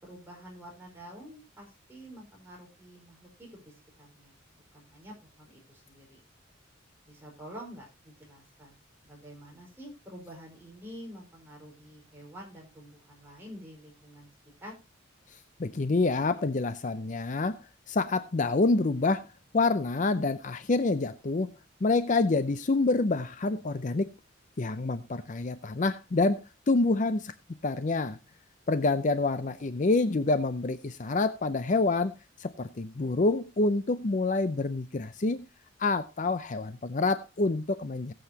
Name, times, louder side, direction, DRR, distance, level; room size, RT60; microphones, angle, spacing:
voice 1, 0.0-4.3 4.7-6.2 7.1-8.8 9.0-14.3 14.6-14.7 29.3-29.5, equal, 10° right, 4.8 m, -48 dB
voice 2, 15.6-17.6 17.9-19.3 19.5-21.5 21.8-24.1 24.6-27.3 27.6-28.2 28.7-32.1 32.4-35.5 35.8-38.1, left 3 dB, 40° left, 0.5 m, -27 dB
18.0 x 7.8 x 2.8 m
head